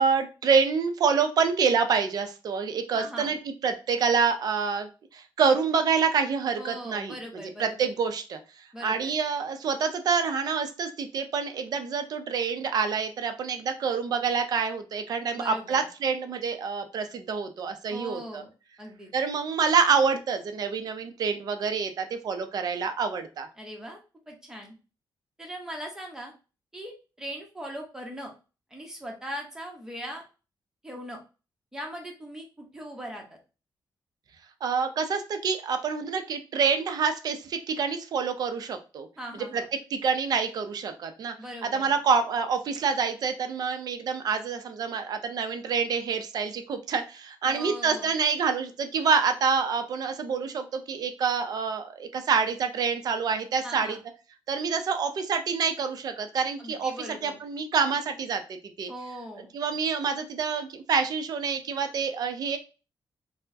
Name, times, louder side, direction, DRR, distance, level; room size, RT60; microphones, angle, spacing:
voice 1, 0.0-7.1 7.6-18.4 19.1-23.5 34.6-39.1 39.5-39.6 39.9-41.3 41.6-54.0 54.5-56.9 57.2-58.9 59.5-62.6, right 5 dB, 50° right, 7 dB, 0.5 m, -27 dB
voice 2, 2.9-3.3 6.6-7.9 8.7-9.1 15.3-15.9 17.9-18.5 18.8-19.1 23.6-24.0 24.3-24.7 25.4-26.3 26.7-28.3 28.7-30.2 30.8-31.2 31.7-33.4 39.2-39.6 41.4-42.0 47.4-48.1 53.6-54.0 56.6-57.4 58.9-59.5, equal, 5° right, 0 dB, 0.8 m, -40 dB
4.4 x 2.1 x 2.6 m, 0.32 s
wide cardioid pair, 175°, 8 cm